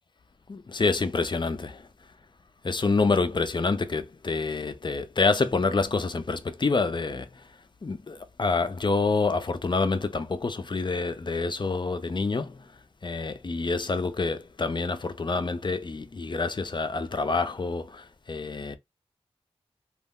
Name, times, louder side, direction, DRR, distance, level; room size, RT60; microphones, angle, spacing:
voice 1, 0.5-1.9 2.6-7.4 7.8-12.7 13.0-18.8, left 4 dB, 45° left, 0.5 m, -27 dB
2.5 x 2.1 x 3.6 m
wide cardioid pair, 60°, 11 cm